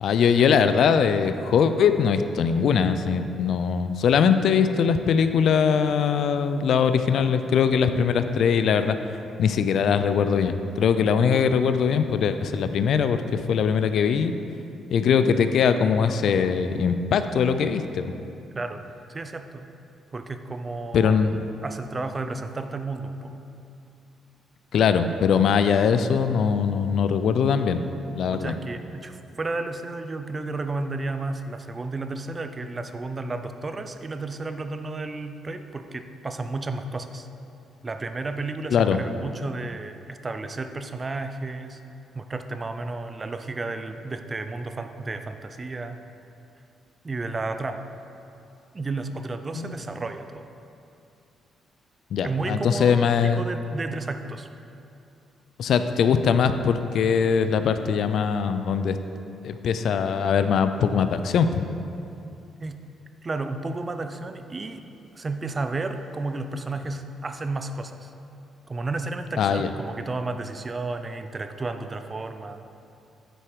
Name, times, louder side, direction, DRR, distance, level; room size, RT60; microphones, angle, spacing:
voice 1, 0.0-9.0 9.4-14.3 14.9-18.2 20.9-21.4 24.7-27.8 28.2-28.5 38.7-39.0 49.5-49.7 52.1-53.4 55.6-59.0 59.4-61.7 69.4-69.7, left 6 dB, 70° left, 9 dB, 0.4 m, -21 dB
voice 2, 19.1-19.7 20.1-21.2 21.6-23.4 28.2-37.3 37.8-41.8 42.1-46.0 47.0-47.9 48.7-50.5 52.2-54.5 62.6-62.8 63.2-64.8 65.1-68.1 68.7-72.6, right 3 dB, 30° right, 8 dB, 0.5 m, -32 dB
8.8 x 4.8 x 4.7 m, 2.6 s
cardioid pair, 90°, 0 cm